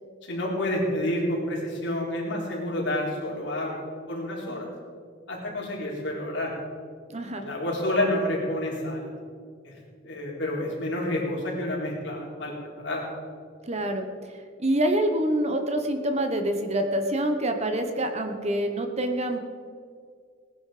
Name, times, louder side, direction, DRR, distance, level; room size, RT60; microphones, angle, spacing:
voice 1, 0.3-3.8 4.1-4.7 5.3-6.5 7.4-9.1 10.0-12.5 12.8-13.1, left 1 dB, 65° left, -3 dB, 4.0 m, -29 dB
voice 2, 7.1-7.4 13.6-14.0 14.6-19.4, right 1 dB, 35° right, 6 dB, 1.2 m, -26 dB
18.5 x 10.5 x 5.1 m, 2.1 s
head